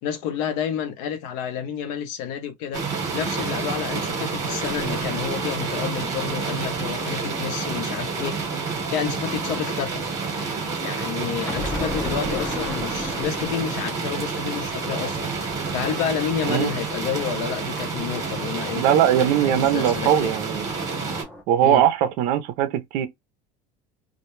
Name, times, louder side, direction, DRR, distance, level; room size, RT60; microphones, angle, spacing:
voice 1, 0.0-2.8 3.1-8.4 8.6-10.0 10.8-18.8 19.4-20.3 21.6-21.8, left 8 dB, 65° left, 0.6 m, -30 dB
sound 1, 2.7-21.2, right 4 dB, 20° right, 0.9 m, -29 dB
sound 2, 4.6-7.4 11.5-17.7 19.0-21.4, left 1 dB, 10° left, 0.5 m, -38 dB
voice 2, 18.8-20.7 21.5-23.1, right 10 dB, 55° right, 0.5 m, -20 dB
2.1 x 2.1 x 2.9 m
cardioid pair, 170°, 16 cm